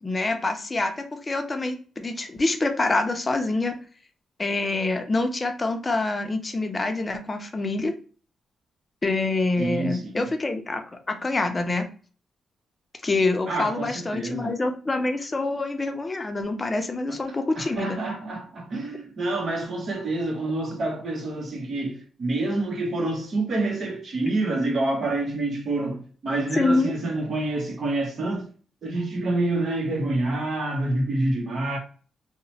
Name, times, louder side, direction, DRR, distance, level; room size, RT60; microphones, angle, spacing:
voice 1, 0.0-3.8 4.4-7.9 9.0-10.8 11.1-11.9 13.0-18.0 26.6-26.9, left 2 dB, 25° left, 0.5 m, -26 dB
voice 2, 9.6-10.3 13.5-14.5 17.1-17.2 17.6-28.5 28.8-31.8, right 2 dB, 55° right, 0.9 m, -27 dB
2.9 x 2.1 x 2.7 m
cardioid pair, 90°, 0 cm